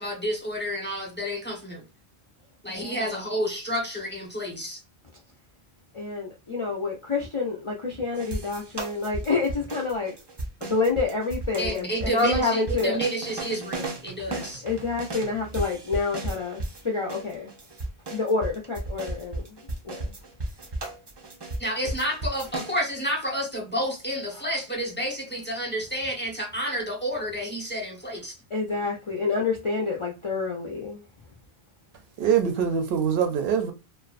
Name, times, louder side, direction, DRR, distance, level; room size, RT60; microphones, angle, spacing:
voice 1, 0.0-1.8 2.6-4.8 11.6-14.6 21.6-28.3, equal, 10° left, 0.8 m, -30 dB
voice 2, 2.7-3.2 5.9-10.1 10.6-13.0 14.3-17.5 18.1-20.1 24.3-24.5 28.5-31.0, left 4 dB, 45° left, 0.4 m, -28 dB
sound 1, 8.2-16.8 17.1-22.8, right 2 dB, 45° right, 0.3 m, -34 dB
voice 3, 32.2-33.7, right 7 dB, 75° right, 0.8 m, -23 dB
2.4 x 2.1 x 2.4 m
omnidirectional pair, 1.0 m